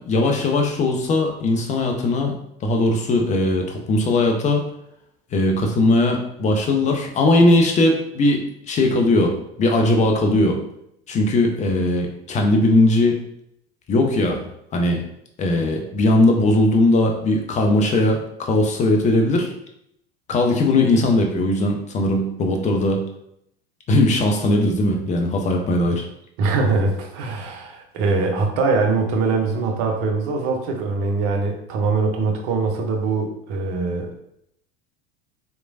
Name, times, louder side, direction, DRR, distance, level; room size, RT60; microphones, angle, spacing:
voice 1, 0.1-2.3 2.6-4.6 5.3-10.6 11.1-13.2 13.9-14.4 14.7-15.0 15.4-19.5 20.3-23.0 23.9-26.1, left 2 dB, 20° left, 1 dB, 0.5 m, -19 dB
voice 2, 26.4-34.2, right 4 dB, 45° right, 2 dB, 0.6 m, -22 dB
3.0 x 2.1 x 2.5 m, 0.75 s
figure-of-eight pair, 80°, 32 cm